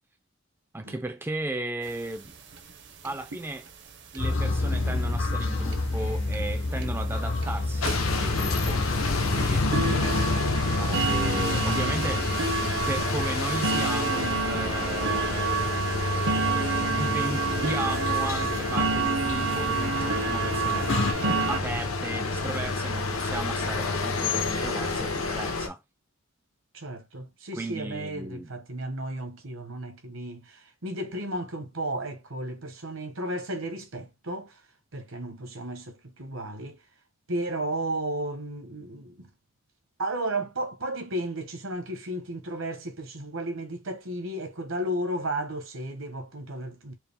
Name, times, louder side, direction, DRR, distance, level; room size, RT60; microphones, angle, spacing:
voice 1, 0.7-2.3 3.0-3.7 4.1-8.9 9.1-9.7 10.5-12.3 12.9-15.6 16.9-21.0 21.5-25.8 27.5-28.5, right 2 dB, 10° right, 0.3 m, -35 dB
sound 1, 1.9-2.0 2.2-2.3 2.5-2.7 3.0-3.4 4.1-4.2 4.8-4.9 5.2-5.3 5.7-5.8 6.3-6.4 6.8-7.0 7.4-7.5 7.8-21.6, right 5 dB, 55° right, 0.7 m, -29 dB
sound 2, 4.2-21.1, left 2 dB, 65° left, 0.8 m, -30 dB
sound 3, 7.8-25.7, left 3 dB, 85° left, 1.1 m, -30 dB
voice 2, 26.7-34.6 34.9-36.8 37.3-39.3 40.0-46.9, right 1 dB, 75° right, 1.1 m, -33 dB
4.6 x 2.0 x 3.5 m
head